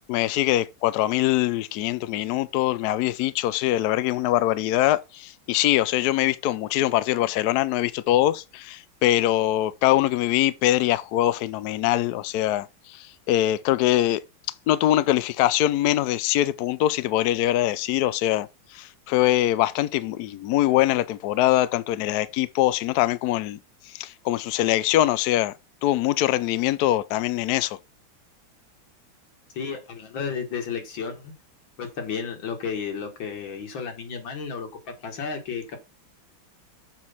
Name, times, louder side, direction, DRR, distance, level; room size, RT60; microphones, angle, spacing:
voice 1, 0.1-14.2 14.7-18.5 18.7-23.6 23.9-25.5 25.8-27.8, left 14 dB, 85° left, 0.8 m, -23 dB
voice 2, 29.5-31.3 31.8-35.8, left 6 dB, 65° left, 2.4 m, -33 dB
7.4 x 4.6 x 5.6 m
omnidirectional pair, 2.3 m